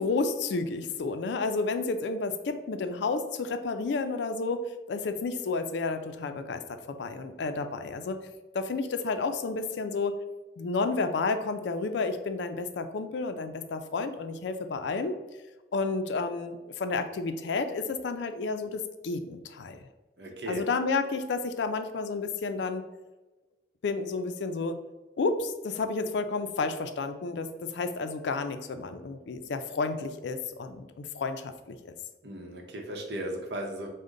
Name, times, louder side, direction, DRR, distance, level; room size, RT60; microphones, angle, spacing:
voice 1, 0.0-8.2 8.5-10.1 10.6-15.2 15.7-19.8 20.5-22.9 23.8-24.8 25.2-31.9, left 4 dB, 75° left, 8 dB, 0.4 m, -31 dB
voice 2, 20.2-20.6 32.2-33.9, right 1 dB, 65° right, 2 dB, 0.7 m, -36 dB
5.1 x 2.1 x 3.7 m, 1.1 s
head